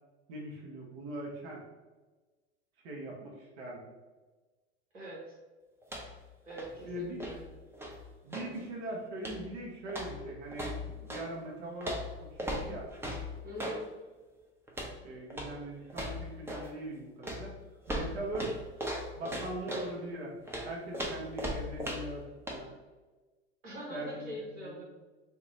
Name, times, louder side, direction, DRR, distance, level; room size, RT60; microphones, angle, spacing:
voice 1, 0.3-1.6 2.8-3.9 6.8-7.3 8.2-11.9 12.2-12.9 15.0-17.5 17.9-18.6 19.2-20.3 20.6-22.7 23.9-24.3 24.6-24.8, right 1 dB, 60° right, -2 dB, 1.1 m, -41 dB
voice 2, 4.9-5.4 6.4-6.9 7.2-7.4 13.4-13.9 23.6-24.8, equal, 85° right, -5 dB, 1.0 m, -42 dB
sound 1, 5.8-6.3 6.5-8.6 9.2-9.5 9.9-11.3 11.8-13.8 14.7-15.0 15.3-15.6 15.9-16.7 17.2-19.9 20.5-22.2 22.5-22.6, equal, 5° right, 0.5 m, -38 dB
2.8 x 2.1 x 3.9 m, 1.3 s
hypercardioid pair, 80°, 36 cm